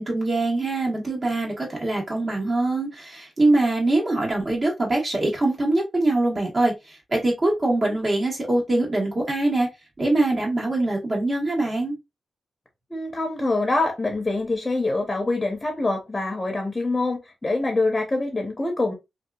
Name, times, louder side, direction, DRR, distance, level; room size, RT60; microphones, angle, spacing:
voice 1, 0.0-9.7 10.0-12.0, right 2 dB, 45° right, 1.4 m, -23 dB
voice 2, 12.9-18.9, left 2 dB, 25° left, 0.7 m, -25 dB
2.7 x 2.3 x 2.3 m
cardioid pair, 65°, 0 cm